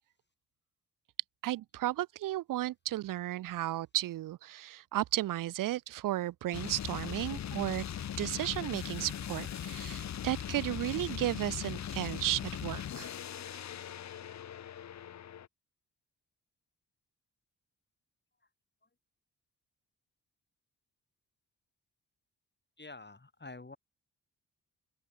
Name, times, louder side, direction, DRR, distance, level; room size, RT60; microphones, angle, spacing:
voice 1, 1.4-7.9 8.2-13.1, right 14 dB, 55° right, 0.5 m, -34 dB
sound 1, 6.5-15.5, left 9 dB, 45° left, 0.7 m, -40 dB
voice 2, 22.8-23.8, left 3 dB, 25° left, 3.8 m, -47 dB
open air
hypercardioid pair, 40°, 39 cm